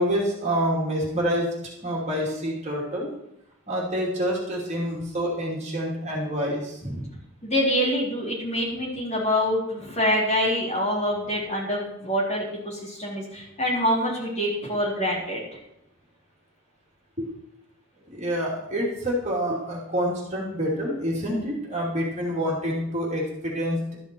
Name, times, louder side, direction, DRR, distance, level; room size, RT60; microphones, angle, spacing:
voice 1, 0.0-1.5 1.8-3.1 3.7-7.1 17.2-17.3 18.1-24.0, equal, 35° right, -3 dB, 2.8 m, -27 dB
voice 2, 7.4-15.4, equal, 35° left, -5 dB, 3.9 m, -25 dB
12.5 x 9.9 x 4.6 m, 0.80 s
head